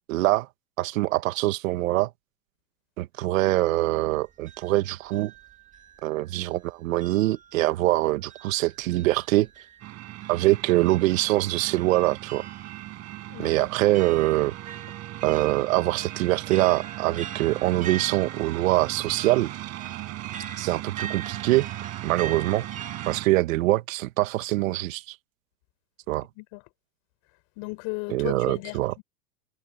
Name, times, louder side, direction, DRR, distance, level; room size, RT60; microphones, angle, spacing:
voice 1, 0.1-0.5 0.8-2.1 3.0-5.3 6.0-9.5 10.3-12.4 13.4-14.5 15.2-19.5 20.6-21.7 22.0-22.7 23.1-25.2 26.1-26.3 28.1-28.9, right 17 dB, 60° right, 1.9 m, -24 dB
sound 1, 4.1-6.6 7.0-23.2, right 8 dB, 15° right, 2.2 m, -43 dB
sound 2, 9.8-23.3, right 16 dB, 35° right, 7.2 m, -38 dB
voice 2, 13.3-13.7 26.4-26.6 27.6-29.0, left 30 dB, 45° left, 6.8 m, -36 dB
supercardioid pair, 140°, 44 cm